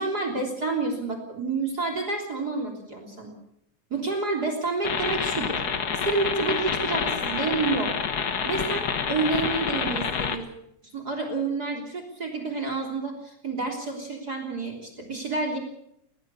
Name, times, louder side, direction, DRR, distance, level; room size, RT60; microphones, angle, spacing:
voice 1, 0.0-3.3 3.9-5.6 5.9-8.0 8.5-10.5 10.9-15.6, right 3 dB, 30° right, 5 dB, 3.7 m, -29 dB
sound 1, 4.8-10.4, left 6 dB, 45° left, 1.4 m, -28 dB
20.0 x 19.5 x 7.0 m, 0.74 s
omnidirectional pair, 3.4 m